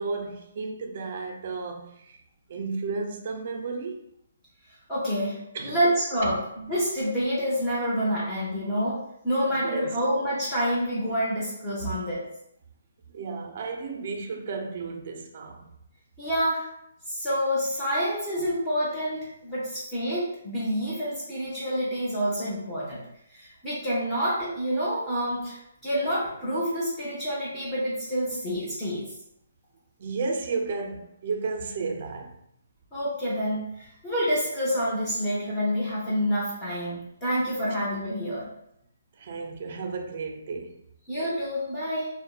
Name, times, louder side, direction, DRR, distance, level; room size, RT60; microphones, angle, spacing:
voice 1, 0.0-2.2 2.5-4.0 5.5-5.8 6.2-6.4 9.6-10.0 13.1-15.7 30.0-32.4 39.2-40.8, right 4 dB, 50° right, 0.4 m, -33 dB
voice 2, 4.9-12.2 16.2-16.7 17.1-23.0 23.3-29.1 32.9-38.5 41.1-42.1, equal, 15° left, 0.7 m, -28 dB
2.7 x 2.0 x 2.3 m
hypercardioid pair, 150°, 0 cm